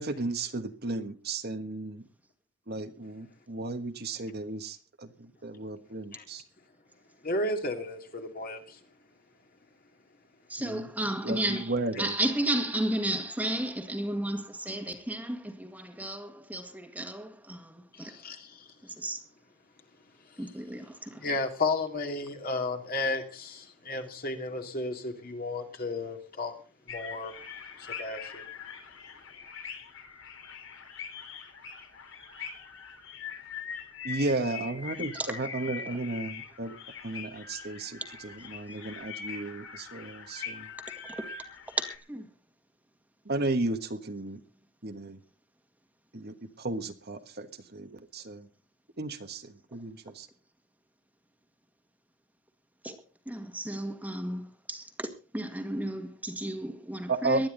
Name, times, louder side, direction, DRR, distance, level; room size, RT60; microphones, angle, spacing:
voice 1, 0.0-2.0 2.7-6.4 10.6-10.9 11.2-12.1 34.0-36.7 37.0-40.7 43.2-44.4 44.8-45.2 46.1-48.5 49.0-50.3 57.1-57.5, right 2 dB, 45° right, 1.5 m, -34 dB
voice 2, 7.2-8.8 18.0-18.6 21.2-26.5 26.9-27.3 27.8-28.4, left 2 dB, 40° left, 2.6 m, -33 dB
voice 3, 10.5-11.7 12.0-18.1 18.8-19.2 20.4-21.3 35.1-35.3 41.1-41.2 41.8-42.3 52.8-53.0 53.2-57.5, right 1 dB, 5° right, 1.8 m, -33 dB
sound 1, 26.9-42.0, left 6 dB, 60° left, 3.3 m, -42 dB
19.5 x 12.0 x 3.9 m
head